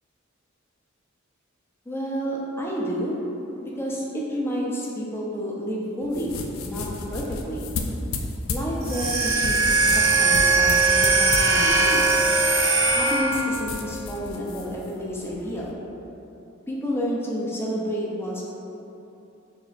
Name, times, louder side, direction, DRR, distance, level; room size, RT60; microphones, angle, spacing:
voice 1, 1.9-3.2 3.6-6.4 6.6-7.7 8.5-12.2 12.9-15.7 16.7-18.4, equal, 10° left, -4 dB, 0.5 m, -30 dB
sound 1, 6.0-15.7, left 3 dB, 80° left, 0.4 m, -33 dB
sound 2, 8.8-13.6, right 3 dB, 70° right, 0.8 m, -20 dB
3.2 x 2.9 x 4.0 m, 2.9 s
head